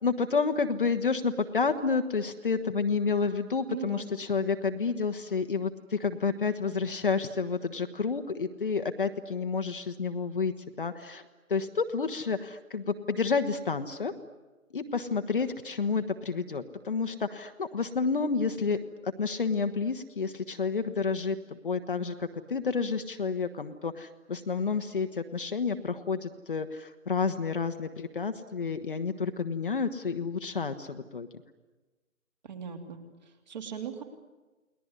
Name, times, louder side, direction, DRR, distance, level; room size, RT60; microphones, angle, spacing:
voice 1, 0.0-14.1 14.7-31.3, left 5 dB, 40° left, 8 dB, 1.2 m, -30 dB
voice 2, 3.7-4.1 32.4-34.0, right 8 dB, 30° right, 7 dB, 2.9 m, -39 dB
29.5 x 20.5 x 9.7 m, 1.2 s
figure-of-eight pair, 155°, 42 cm